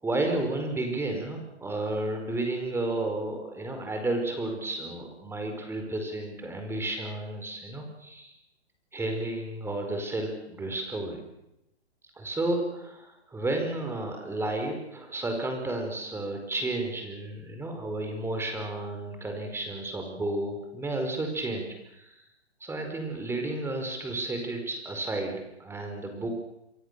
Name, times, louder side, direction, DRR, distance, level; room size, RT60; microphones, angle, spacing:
voice 1, 0.0-8.3 8.9-11.2 12.2-22.2 22.6-26.3, right 2 dB, 5° right, 4 dB, 4.7 m, -32 dB
28.0 x 24.5 x 6.8 m, 0.89 s
hypercardioid pair, 135°, 34 cm